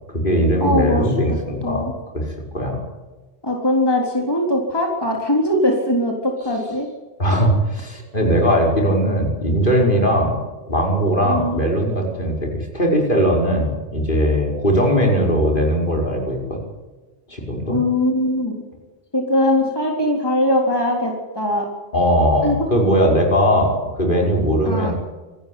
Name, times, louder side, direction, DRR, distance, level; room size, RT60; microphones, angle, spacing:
voice 1, 0.1-1.9 2.1-2.3 2.5-2.8 7.2-10.4 10.7-16.6 17.3-17.8 21.9-24.9, equal, 50° left, 0 dB, 5.6 m, -19 dB
voice 2, 0.6-1.1 1.6-1.9 3.4-6.9 11.2-11.6 17.7-18.6 19.1-21.7 22.4-22.6 24.7-24.9, left 1 dB, 20° left, 0 dB, 3.8 m, -20 dB
26.5 x 14.0 x 9.4 m, 1.2 s
omnidirectional pair, 1.1 m